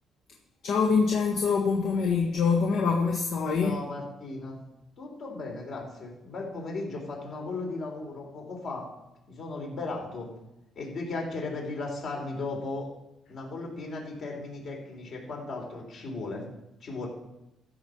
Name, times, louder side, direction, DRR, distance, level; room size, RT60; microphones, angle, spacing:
voice 1, 0.6-3.8, left 5 dB, 80° left, 0 dB, 1.5 m, -25 dB
voice 2, 3.6-4.6 5.0-8.9 9.3-10.3 10.8-12.9 13.3-16.4 16.8-17.1, left 3 dB, 65° left, 0 dB, 3.9 m, -36 dB
14.0 x 5.2 x 6.7 m, 0.91 s
cardioid pair, 90°, 0 cm